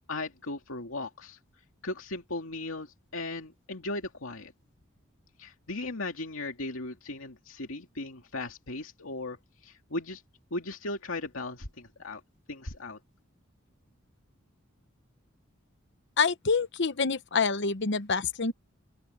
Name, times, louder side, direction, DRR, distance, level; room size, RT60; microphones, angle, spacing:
voice 1, 0.1-1.4 1.8-4.5 5.4-9.4 9.6-10.2 10.5-12.2 12.5-13.0, left 2 dB, 85° left, 2.4 m, -37 dB
voice 2, 16.2-18.5, left 5 dB, 60° left, 1.0 m, -27 dB
open air
head